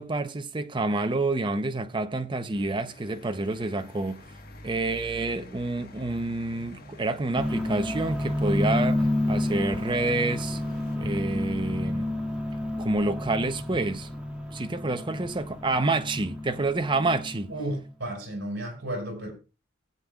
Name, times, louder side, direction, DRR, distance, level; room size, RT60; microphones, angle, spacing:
voice 1, 0.0-4.2 4.6-10.6 11.0-12.1 12.8-14.1 14.5-17.5, right 2 dB, 25° right, 0.7 m, -28 dB
sound 1, 2.5-11.0, left 1 dB, 50° left, 1.4 m, -48 dB
sound 2, 7.3-17.6, left 1 dB, 5° right, 2.0 m, -30 dB
voice 2, 17.5-19.3, right 1 dB, 55° right, 5.1 m, -33 dB
19.0 x 7.9 x 2.3 m
head